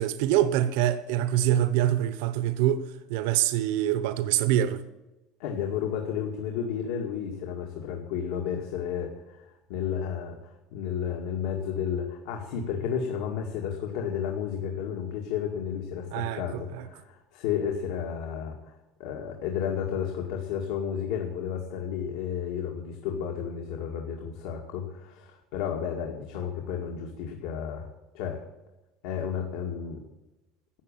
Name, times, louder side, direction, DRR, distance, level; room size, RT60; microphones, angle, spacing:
voice 1, 0.0-2.8 3.1-4.8 16.1-16.9, right 12 dB, 80° right, 1.1 m, -25 dB
voice 2, 5.4-10.4 10.7-18.7 19.0-27.9 28.1-28.4 29.0-30.0, left 8 dB, 80° left, 2.2 m, -32 dB
13.0 x 8.6 x 9.0 m
cardioid pair, 180°, 0 cm